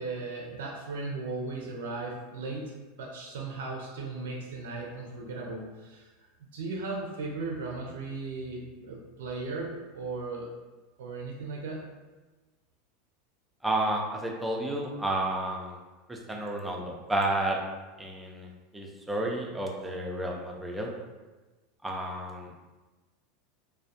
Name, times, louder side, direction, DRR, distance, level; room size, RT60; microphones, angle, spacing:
voice 1, 0.0-2.7 3.0-6.1 6.5-10.5 11.0-11.8, right 3 dB, 80° right, -1 dB, 0.4 m, -36 dB
voice 2, 13.6-15.8 16.1-17.6 18.0-18.5 18.7-20.9 21.8-22.5, right 1 dB, 10° right, 0 dB, 0.5 m, -31 dB
2.3 x 2.1 x 2.7 m, 1.2 s
hypercardioid pair, 95°, 0 cm